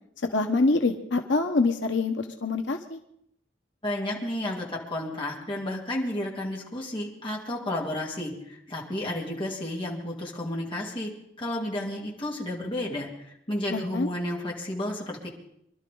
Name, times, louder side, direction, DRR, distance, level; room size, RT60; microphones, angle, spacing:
voice 1, 0.3-3.0 13.7-14.1, left 3 dB, 80° left, 5 dB, 1.1 m, -25 dB
voice 2, 3.8-11.1 11.4-15.3, left 1 dB, 30° left, -3 dB, 3.2 m, -32 dB
25.0 x 12.0 x 3.9 m, 0.75 s
head